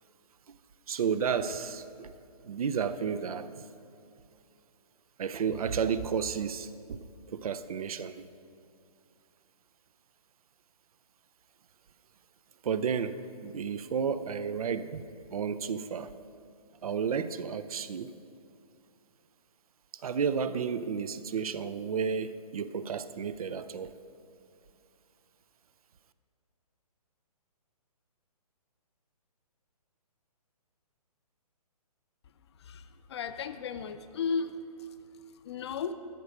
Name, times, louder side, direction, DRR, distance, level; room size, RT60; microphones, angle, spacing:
voice 1, 0.9-2.1 2.4-3.7 5.2-7.1 7.3-8.3 12.6-15.0 15.3-16.1 16.8-18.1 20.0-23.9, right 6 dB, 65° right, 13 dB, 0.6 m, -32 dB
voice 2, 33.1-34.5 35.4-35.9, left 6 dB, 45° left, 9 dB, 0.6 m, -34 dB
13.0 x 5.0 x 6.5 m, 2.5 s
hypercardioid pair, 150°, 20 cm